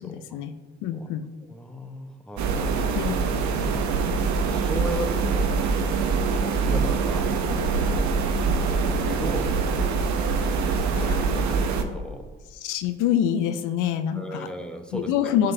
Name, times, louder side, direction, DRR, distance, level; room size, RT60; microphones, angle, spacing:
voice 1, 0.0-0.5 0.8-1.3 2.9-3.4 10.9-11.6 12.5-14.5 14.9-15.5, left 10 dB, 70° left, 9 dB, 0.5 m, -26 dB
voice 2, 1.5-2.8 3.5-3.8 4.5-5.5 5.8-8.0 8.6-9.6 11.0-12.3 14.1-15.1, equal, 5° left, 4 dB, 0.9 m, -37 dB
sound 1, 2.4-11.8, right 4 dB, 60° right, 0.7 m, -24 dB
11.0 x 3.7 x 2.7 m, 1.4 s
hypercardioid pair, 55°, 32 cm